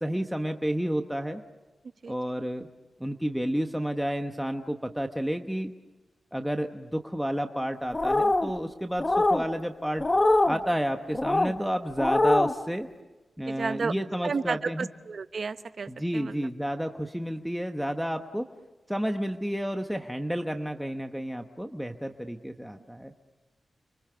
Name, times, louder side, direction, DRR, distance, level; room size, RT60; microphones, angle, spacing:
voice 1, 0.0-1.4 2.1-2.7 3.0-5.7 6.3-10.0 10.4-12.9 13.4-14.9 15.9-18.5 18.9-23.1, equal, ahead, 5 dB, 1.0 m, -31 dB
sound 1, 7.9-8.5 9.0-9.4 10.0-10.6 11.1-11.5 12.0-12.5, left 2 dB, 20° left, 1.1 m, -23 dB
voice 2, 13.4-13.9 14.2-16.4, right 5 dB, 55° right, 11 dB, 0.9 m, -32 dB
30.0 x 24.5 x 6.9 m, 1.2 s
wide cardioid pair, 130°, 0 cm